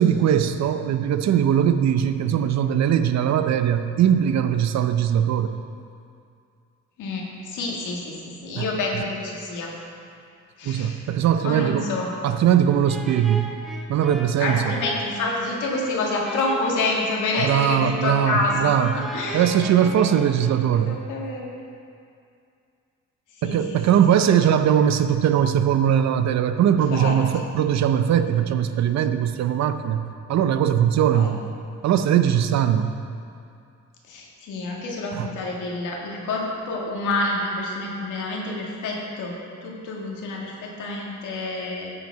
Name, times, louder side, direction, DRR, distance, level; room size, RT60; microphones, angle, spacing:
voice 1, 0.0-5.5 8.6-8.7 10.6-11.9 12.2-13.5 13.9-14.7 17.4-18.9 19.3-20.9 23.4-31.4 31.8-33.0 35.1-35.3, right 9 dB, 60° right, 10 dB, 0.6 m, -20 dB
voice 2, 7.0-9.7 10.6-11.0 11.4-12.1 14.4-19.5 20.7-21.5 23.3-24.2 26.9-27.2 31.1-31.3 34.0-39.4 39.6-41.9, left 2 dB, 80° left, -2 dB, 1.9 m, -28 dB
sound 1, 12.9-20.9, equal, ahead, 1.0 m, -38 dB
14.5 x 5.0 x 4.6 m, 2.4 s
cardioid pair, 90°, 30 cm